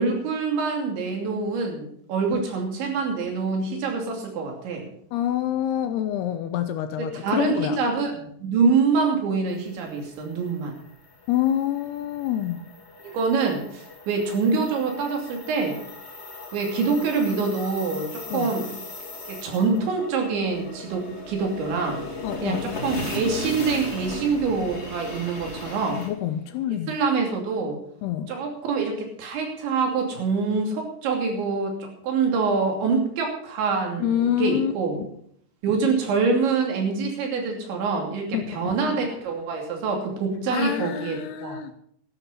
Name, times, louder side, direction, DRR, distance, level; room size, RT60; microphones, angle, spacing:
voice 1, 0.0-4.8 7.0-10.8 13.0-15.8 16.5-18.7 19.3-22.0 22.4-26.0 26.9-27.8 28.3-35.0 35.6-41.6, right 4 dB, 80° right, 1 dB, 5.1 m, -25 dB
voice 2, 5.1-7.8 11.3-12.6 18.3-18.5 22.2-22.7 26.0-26.9 28.0-28.3 34.0-34.7 38.3-38.9 40.5-41.7, left 11 dB, 75° left, 10 dB, 2.6 m, -27 dB
sound 1, 9.6-26.1, left 2 dB, 30° left, 1.2 m, -37 dB
13.5 x 11.0 x 5.6 m, 0.66 s
omnidirectional pair, 5.1 m